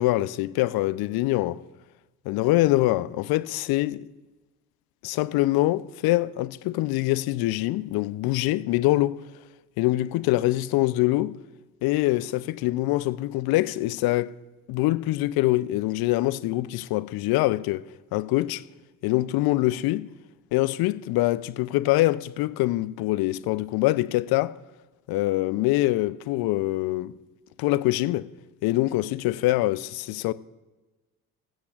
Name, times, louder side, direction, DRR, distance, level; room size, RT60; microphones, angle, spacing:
voice 1, 0.0-1.6 2.3-4.1 5.0-9.2 9.8-11.4 11.8-14.3 14.7-17.8 18.1-18.6 19.0-20.1 20.5-24.5 25.1-27.1 27.6-28.3 28.6-30.3, left 17 dB, 60° left, 0.6 m, -24 dB
18.0 x 15.5 x 2.5 m
hypercardioid pair, 50°, 42 cm